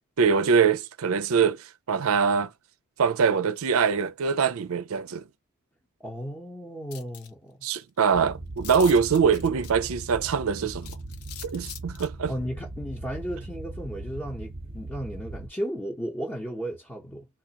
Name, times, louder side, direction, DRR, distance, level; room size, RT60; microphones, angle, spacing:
voice 1, 0.2-2.5 3.0-5.2 7.6-10.9 11.4-12.3, right 6 dB, 65° right, 0.4 m, -23 dB
voice 2, 6.0-7.6 12.3-17.3, equal, 10° left, 0.8 m, -34 dB
sound 1, 6.9-7.3 7.8-7.9 8.1-8.2 8.6-10.0 10.8-12.1, left 10 dB, 70° left, 0.6 m, -42 dB
sound 2, 8.1-15.5, right 2 dB, 25° right, 0.8 m, -39 dB
3.7 x 2.4 x 2.8 m
head